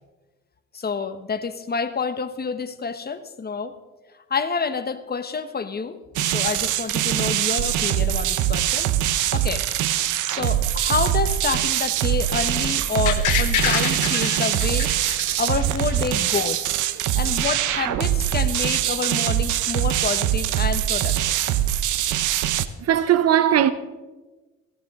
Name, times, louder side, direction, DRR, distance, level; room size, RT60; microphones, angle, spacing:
voice 1, 0.7-3.7 4.3-6.0 6.2-8.9 9.3-9.7 10.3-14.9 15.4-16.7 17.2-21.4, left 5 dB, 30° left, 1.1 m, -28 dB
sound 1, 6.2-22.7, right 12 dB, 85° right, 0.7 m, -23 dB
sound 2, 13.1-16.0 16.3-16.4, left 10 dB, 80° left, 1.4 m, -26 dB
voice 2, 22.8-23.7, right 10 dB, 55° right, 0.8 m, -19 dB
16.5 x 15.5 x 3.7 m
cardioid pair, 90°, 30 cm